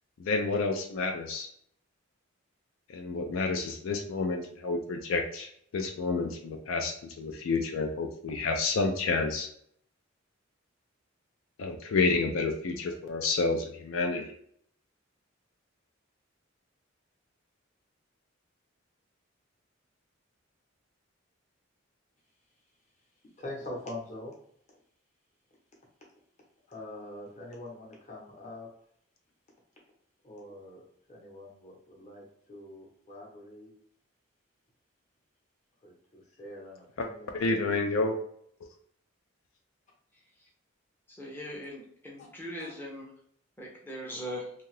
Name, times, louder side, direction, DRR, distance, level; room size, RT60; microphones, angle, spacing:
voice 1, 0.2-1.5 2.9-9.5 11.6-14.2 37.0-37.1 37.3-38.2, left 3 dB, 75° left, 4 dB, 0.4 m, -29 dB
voice 2, 23.4-24.3 26.7-28.7 30.2-30.8 31.1-33.7 35.8-38.2 42.2-42.3 42.6-42.8, left 1 dB, 35° left, -2 dB, 0.8 m, -44 dB
voice 3, 41.2-43.1 43.6-44.5, equal, 10° left, -3 dB, 0.5 m, -40 dB
2.7 x 2.3 x 3.1 m, 0.66 s
head